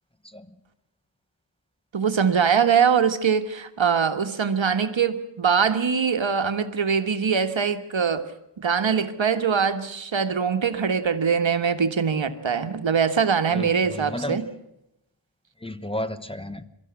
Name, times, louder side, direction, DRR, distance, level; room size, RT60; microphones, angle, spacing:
voice 1, 1.9-8.2 8.6-14.5, right 6 dB, 75° right, 9 dB, 1.5 m, -22 dB
voice 2, 13.5-14.4 15.6-16.6, left 1 dB, 10° left, 11 dB, 1.1 m, -32 dB
23.5 x 13.5 x 9.7 m, 0.86 s
wide cardioid pair, 80°, 46 cm